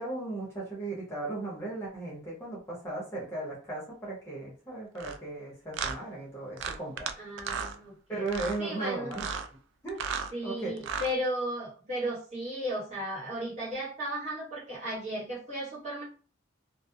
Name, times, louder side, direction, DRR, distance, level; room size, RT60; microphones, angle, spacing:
voice 1, 0.0-7.1 8.1-9.2 9.8-10.0 10.4-10.7, right 2 dB, 15° left, -6 dB, 0.8 m, -36 dB
sound 1, 5.0-5.2 5.7-6.0 6.6-7.1 7.4-7.7 8.3-8.6 9.1-9.5 9.9-10.3 10.8-11.1, right 6 dB, 65° right, 0.3 m, -34 dB
voice 2, 7.2-8.2 8.6-9.2 10.3-16.0, equal, 35° right, -6 dB, 1.2 m, -35 dB
2.3 x 2.0 x 2.7 m, 0.38 s
head